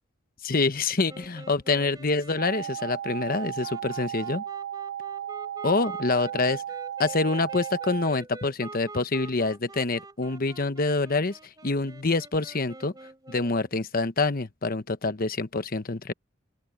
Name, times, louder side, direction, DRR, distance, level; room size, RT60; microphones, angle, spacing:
voice 1, 0.4-4.4 5.6-6.6 7.0-12.9 13.3-16.1, left 3 dB, 45° left, 1.0 m, -26 dB
sound 1, 1.1-13.7, right 2 dB, 20° right, 4.1 m, -46 dB
sound 2, 2.4-8.1, right 10 dB, 65° right, 1.1 m, -35 dB
open air
head